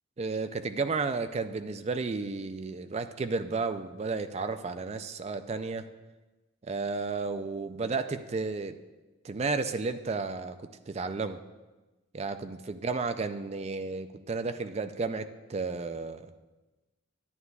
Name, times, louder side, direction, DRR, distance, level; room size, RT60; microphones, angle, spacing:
voice 1, 0.2-5.9 6.6-8.8 9.2-11.4 12.1-16.3, right 4 dB, 30° right, 9 dB, 0.3 m, -33 dB
11.0 x 9.5 x 2.3 m, 1.2 s
head